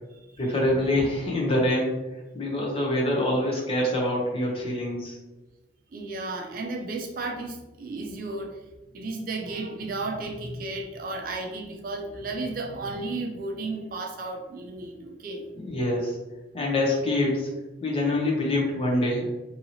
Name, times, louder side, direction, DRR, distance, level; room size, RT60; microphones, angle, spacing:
voice 1, 0.4-1.9 2.3-5.2 15.6-16.2 16.5-17.5 17.8-19.3, left 1 dB, 30° left, -3 dB, 0.6 m, -25 dB
voice 2, 5.9-8.6 8.9-15.5, right 2 dB, 45° right, 1 dB, 0.4 m, -33 dB
2.8 x 2.7 x 2.7 m, 1.1 s
head